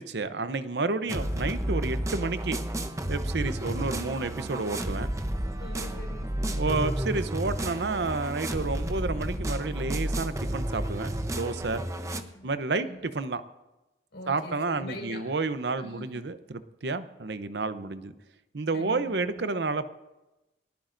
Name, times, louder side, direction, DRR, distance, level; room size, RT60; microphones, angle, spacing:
voice 1, 0.0-2.6 3.1-5.1 6.6-11.8 12.4-13.4 14.3-18.1 18.5-19.9, right 3 dB, 70° right, 11 dB, 0.7 m, -30 dB
sound 1, 1.1-12.2, right 1 dB, 20° right, 0.8 m, -31 dB
voice 2, 3.5-3.9 5.6-6.6 11.7-13.0 14.1-15.2 15.8-16.2 18.7-19.5, left 1 dB, 80° left, 0 dB, 5.2 m, -44 dB
29.5 x 11.5 x 2.6 m, 1.0 s
head